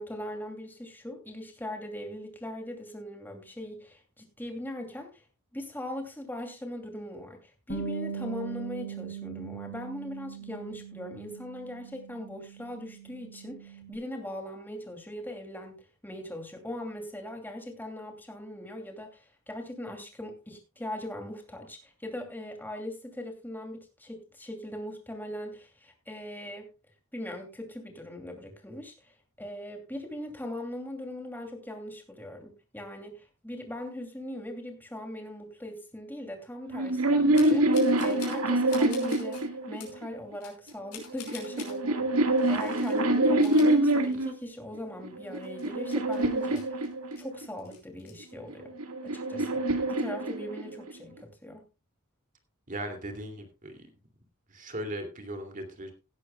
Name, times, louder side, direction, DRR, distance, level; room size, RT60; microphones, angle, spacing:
voice 1, 0.0-5.2 5.5-26.7 27.1-29.1 29.4-46.8 47.2-48.7 49.0-51.7, left 1 dB, 10° left, 2.7 m, -40 dB
Bass guitar, 7.7-13.9, right 6 dB, 60° left, 3.9 m, -40 dB
sound 1, 36.7-40.1 41.0-44.4 45.0-47.5 48.5-50.9, right 1 dB, 80° right, 1.7 m, -26 dB
sound 2, 37.3-38.4 38.7-39.4 39.8-40.0 40.4-41.8 42.4-43.0 43.3-44.5 44.8-44.9 45.3-47.2 47.6-48.1, left 7 dB, 85° left, 5.1 m, -47 dB
voice 2, 52.7-53.9 54.5-55.9, right 1 dB, 40° right, 2.5 m, -38 dB
17.5 x 11.5 x 2.3 m
head